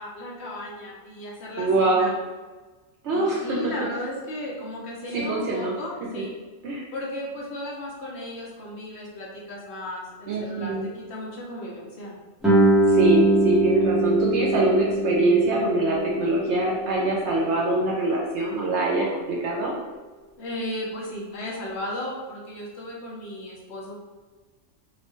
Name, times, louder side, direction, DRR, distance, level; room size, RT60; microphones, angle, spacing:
voice 1, 0.0-2.1 3.1-6.3 6.9-12.1 20.4-23.9, left 1 dB, 60° left, -4 dB, 0.9 m, -35 dB
voice 2, 1.6-2.1 3.0-3.8 5.1-5.7 6.6-6.9 10.3-10.9 12.9-19.7, right 2 dB, 65° right, -3 dB, 0.8 m, -24 dB
Guitar, 12.4-17.8, right 1 dB, ahead, 0.5 m, -22 dB
2.8 x 2.1 x 3.0 m, 1.3 s
omnidirectional pair, 1.4 m